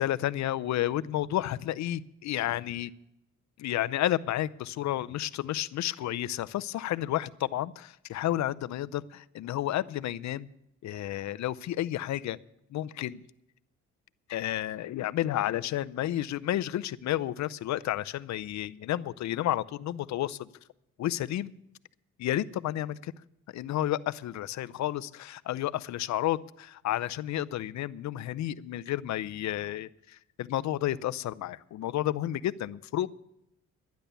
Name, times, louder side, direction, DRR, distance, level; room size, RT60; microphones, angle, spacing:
voice 1, 0.0-2.9 3.6-10.5 10.8-12.4 12.7-13.2 14.3-20.5 21.0-21.5 22.2-23.1 23.5-33.1, left 13 dB, 65° left, 16 dB, 0.6 m, -31 dB
12.0 x 10.5 x 6.9 m, 0.81 s
cardioid pair, 90°, 30 cm